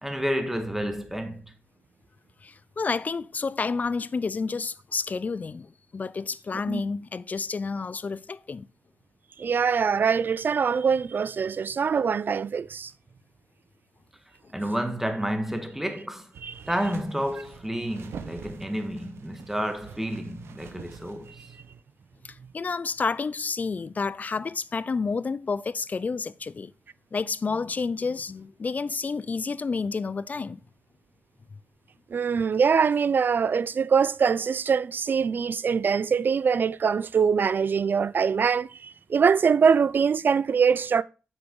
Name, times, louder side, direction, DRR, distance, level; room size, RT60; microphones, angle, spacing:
voice 1, 0.0-1.5 14.5-16.3 16.7-21.3, equal, 5° right, 1.5 m, -30 dB
voice 2, 2.4-8.7 22.2-26.7 27.1-30.6, left 4 dB, 40° left, 0.4 m, -30 dB
voice 3, 9.4-12.9 16.4-16.5 32.1-41.0, right 6 dB, 50° right, 0.3 m, -23 dB
sound 1, 16.3-21.8, right 6 dB, 85° right, 0.9 m, -45 dB
7.9 x 5.9 x 3.8 m
cardioid pair, 80°, 4 cm